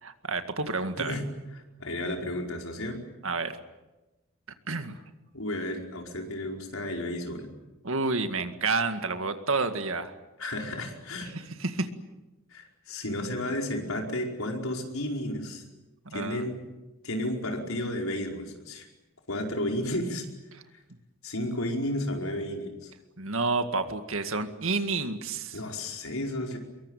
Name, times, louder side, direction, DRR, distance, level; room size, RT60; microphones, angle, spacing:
voice 1, 0.0-1.2 3.2-3.6 4.7-5.0 7.8-10.1 11.6-11.9 16.1-16.4 23.2-25.6, right 3 dB, 65° right, 8 dB, 2.0 m, -29 dB
voice 2, 1.0-3.0 5.3-7.5 10.4-11.3 12.5-15.6 16.1-16.6 17.0-18.9 19.3-20.3 21.2-22.9 25.5-26.6, left 1 dB, 70° left, 2 dB, 5.0 m, -32 dB
24.5 x 23.0 x 9.2 m, 1.1 s
head